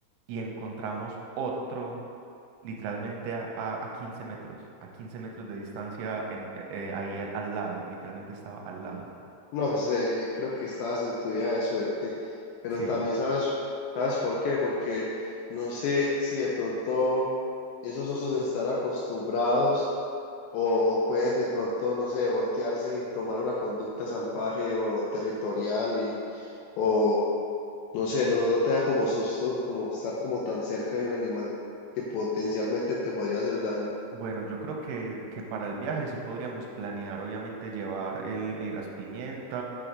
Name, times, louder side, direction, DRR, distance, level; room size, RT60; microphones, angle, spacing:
voice 1, 0.3-2.0 2.6-4.6 5.0-9.1 12.7-13.0 34.1-39.6, right 4 dB, 90° right, 0 dB, 3.2 m, -35 dB
voice 2, 9.5-12.1 12.6-13.5 14.0-15.1 15.5-17.3 17.8-19.8 20.5-26.5 26.8-27.2 27.9-31.5 32.0-33.9, left 2 dB, 85° left, -5 dB, 2.6 m, -28 dB
7.7 x 4.0 x 4.7 m, 2.6 s
omnidirectional pair, 5.7 m